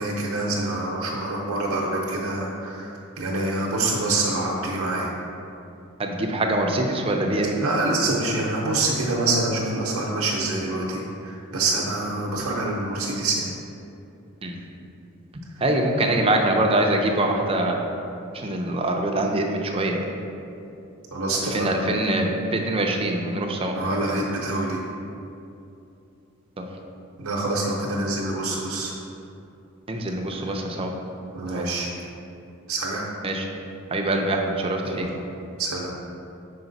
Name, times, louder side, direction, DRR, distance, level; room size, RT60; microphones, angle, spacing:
voice 1, 0.0-5.1 7.6-13.5 21.1-21.7 23.8-24.8 27.2-28.9 31.3-31.9 32.7-33.1 34.8-35.1 35.6-35.9, right 2 dB, 80° right, -3 dB, 0.8 m, -26 dB
voice 2, 6.0-7.6 14.4-14.6 15.6-17.8 18.3-20.1 21.4-23.7 29.9-30.9 31.5-31.7 33.2-33.5 33.9-35.1, right 1 dB, 25° right, 1 dB, 0.5 m, -24 dB
5.9 x 4.8 x 4.0 m, 2.7 s
head